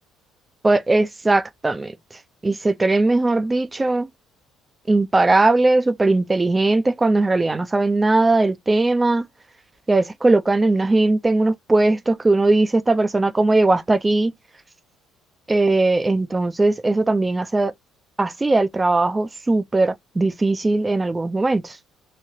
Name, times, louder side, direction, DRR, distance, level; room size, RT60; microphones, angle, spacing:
voice 1, 0.6-1.9 2.4-4.1 4.9-9.3 9.9-14.3 15.5-17.7 18.2-21.8, right 2 dB, 20° right, 0.6 m, -19 dB
3.2 x 2.7 x 4.2 m
supercardioid pair, 70°, 0 cm